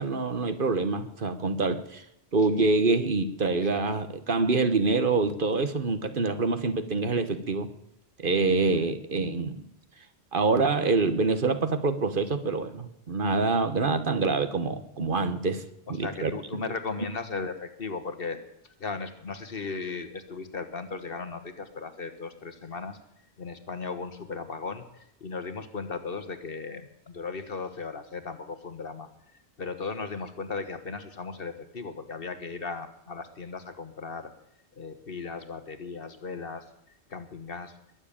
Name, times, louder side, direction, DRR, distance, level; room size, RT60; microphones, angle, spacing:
voice 1, 0.0-2.0 2.3-7.7 8.2-9.6 10.3-15.6 15.9-16.6, right 3 dB, 55° right, 11 dB, 1.3 m, -26 dB
voice 2, 16.0-18.4 18.8-23.0 23.4-24.8 25.2-29.1 29.6-34.3 34.8-36.6 37.1-37.7, left 4 dB, 60° left, 9 dB, 1.7 m, -36 dB
21.5 x 7.5 x 8.7 m, 0.82 s
omnidirectional pair, 1.1 m